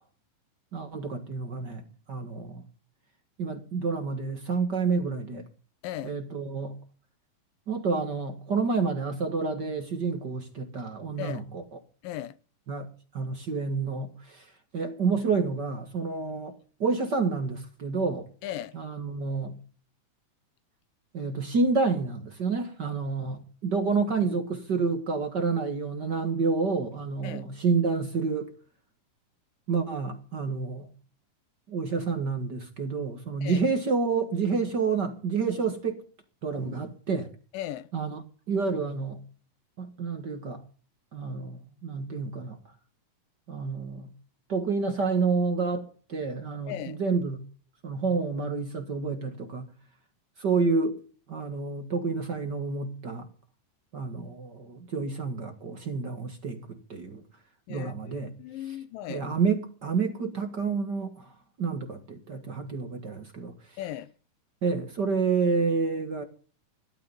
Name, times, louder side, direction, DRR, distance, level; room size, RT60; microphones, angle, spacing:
voice 1, 0.7-2.6 3.4-5.4 6.0-6.7 7.7-11.6 12.7-12.9 13.1-14.5 14.7-18.3 18.7-19.6 21.1-28.5 29.7-30.9 31.7-36.0 36.4-37.3 37.9-38.2 38.5-39.2 39.8-40.6 41.1-42.6 43.5-44.1 44.5-47.4 47.8-49.7 50.4-51.0 51.3-53.3 53.9-57.2 57.7-58.3 59.1-61.3 61.6-63.8 64.6-66.2, right 4 dB, 40° right, 1.6 m, -29 dB
voice 2, 5.8-6.2 11.2-11.4 12.0-12.4 18.4-18.8 27.2-27.4 33.4-33.7 37.5-37.9 46.7-47.0 57.7-59.3 63.8-64.1, left 12 dB, 80° left, 2.5 m, -37 dB
16.5 x 12.0 x 5.5 m
omnidirectional pair, 4.0 m